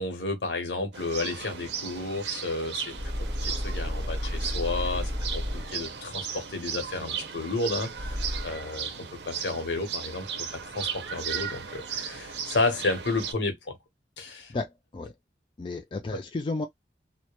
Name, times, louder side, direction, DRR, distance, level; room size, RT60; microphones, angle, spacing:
voice 1, 0.0-8.9 9.3-10.5 10.7-13.8 14.2-14.5, left 3 dB, 75° left, 0.8 m, -32 dB
sound 1, 0.9-13.3, right 7 dB, 70° right, 0.5 m, -36 dB
sound 2, 2.9-6.0 7.9-8.8, equal, 20° right, 0.6 m, -32 dB
voice 2, 14.3-15.1 15.6-16.7, left 3 dB, 30° left, 0.3 m, -33 dB
2.2 x 2.1 x 2.9 m
head